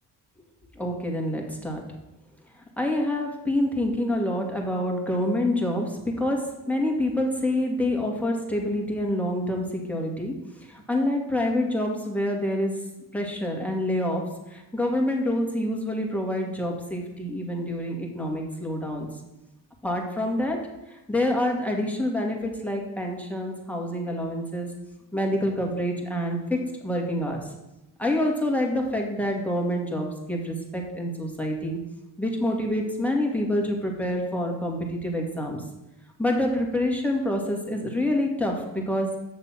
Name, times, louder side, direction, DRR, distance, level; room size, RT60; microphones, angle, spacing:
voice 1, 0.8-1.8 2.8-10.4 10.7-12.8 13.1-19.1 19.8-20.6 21.1-24.7 25.1-27.4 28.0-31.8 32.2-35.6 36.2-39.2, left 1 dB, 5° left, 0 dB, 2.4 m, -27 dB
6.8 x 6.7 x 6.0 m, 0.96 s
supercardioid pair, 55°, 49 cm